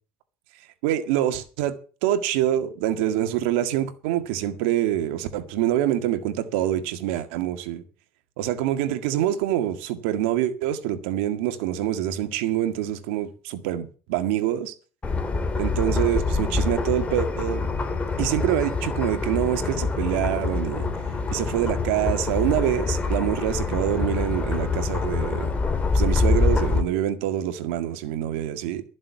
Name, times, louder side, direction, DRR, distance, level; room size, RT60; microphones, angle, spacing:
voice 1, 0.8-1.8 2.0-7.8 8.4-14.7 15.6-17.7 18.2-20.9 21.3-25.5 25.9-28.8, right 12 dB, 90° right, 1.8 m, -25 dB
sound 1, 15.0-26.8, left 4 dB, 20° left, 2.9 m, -25 dB
13.5 x 7.5 x 7.0 m
cardioid pair, 120°, 6 cm